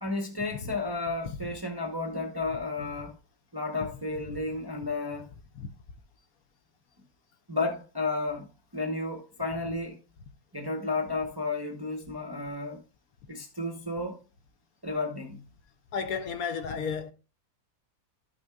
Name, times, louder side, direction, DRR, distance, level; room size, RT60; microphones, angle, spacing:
voice 1, 0.0-3.1 3.5-5.3 7.5-8.5 8.7-10.0 10.5-12.8 13.3-14.2 14.8-15.4, left 3 dB, 20° right, 0.6 m, -32 dB
voice 2, 15.9-17.1, left 6 dB, 65° left, 1.0 m, -32 dB
12.0 x 6.2 x 2.3 m
omnidirectional pair, 1.8 m